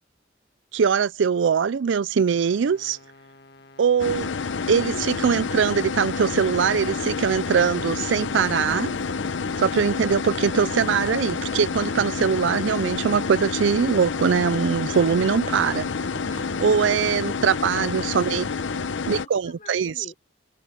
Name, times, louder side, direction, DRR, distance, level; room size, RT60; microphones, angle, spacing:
voice 1, 0.7-3.0 3.8-4.3 4.7-8.9 9.6-15.9 16.6-18.4 19.1-19.9, right 6 dB, 80° right, 0.4 m, -22 dB
sound 1, 2.3-10.0, left 3 dB, 55° left, 1.9 m, -50 dB
sound 2, 4.0-19.3, left 5 dB, 80° left, 0.8 m, -29 dB
sound 3, 8.3-18.5, equal, 25° right, 1.4 m, -45 dB
voice 2, 18.6-20.1, left 2 dB, 40° left, 5.8 m, -48 dB
head